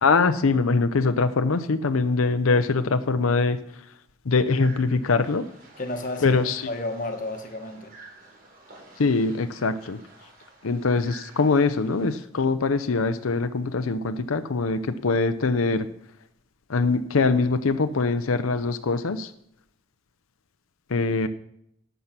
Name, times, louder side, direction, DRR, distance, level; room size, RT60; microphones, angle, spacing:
voice 1, 0.0-3.6 4.3-5.4 6.2-6.6 9.0-10.0 10.6-15.9 16.7-19.3 20.9-21.3, left 4 dB, 90° left, 0.6 m, -23 dB
sound 1, 4.5-12.1, right 3 dB, 45° right, 3.8 m, -50 dB
voice 2, 5.8-8.0, left 2 dB, 40° left, 1.3 m, -32 dB
11.5 x 8.1 x 6.0 m
head